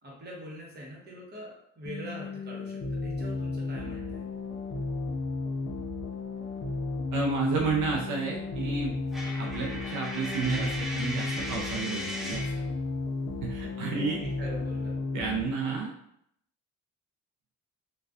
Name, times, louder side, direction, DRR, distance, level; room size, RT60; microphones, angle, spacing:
voice 1, 0.0-4.3 13.7-14.9, equal, 35° right, -4 dB, 1.0 m, -43 dB
sound 1, 1.9-15.4, left 3 dB, 45° left, 0.5 m, -34 dB
voice 2, 7.1-8.9 9.4-12.4 13.4-14.2 15.1-15.9, right 4 dB, 80° right, -1 dB, 0.5 m, -31 dB
Coin (dropping), 9.1-12.6, equal, ahead, 0.5 m, -37 dB
2.4 x 2.3 x 2.3 m, 0.74 s
cardioid pair, 90°, 30 cm